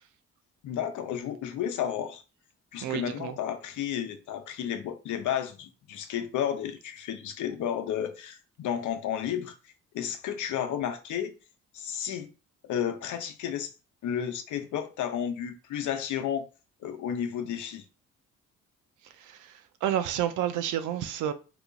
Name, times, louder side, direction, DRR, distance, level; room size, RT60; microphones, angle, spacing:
voice 1, 0.6-2.2 2.7-9.5 9.9-11.3 11.7-12.3 12.6-13.7 14.0-16.5 16.8-17.8, left 9 dB, 75° left, 0.7 m, -32 dB
voice 2, 2.8-3.4 19.2-19.5 19.8-21.3, right 11 dB, 85° right, 0.5 m, -30 dB
3.0 x 2.3 x 3.9 m
cardioid pair, 90°, 30 cm